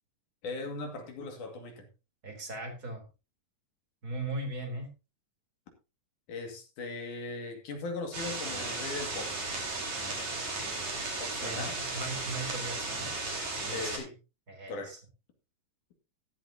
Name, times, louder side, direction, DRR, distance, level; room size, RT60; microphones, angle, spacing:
voice 1, 0.4-1.9 6.3-9.3 11.2-11.8 13.7-14.1 14.7-14.9, left 3 dB, 65° left, 4 dB, 3.6 m, -39 dB
voice 2, 2.2-3.0 4.0-4.9 11.4-13.1 13.7-14.0 14.5-15.0, right 2 dB, 30° right, 4 dB, 3.6 m, -38 dB
sound 1, 8.1-14.0, right 3 dB, 55° right, 5.5 m, -35 dB
14.5 x 12.0 x 2.8 m, 0.29 s
omnidirectional pair, 3.8 m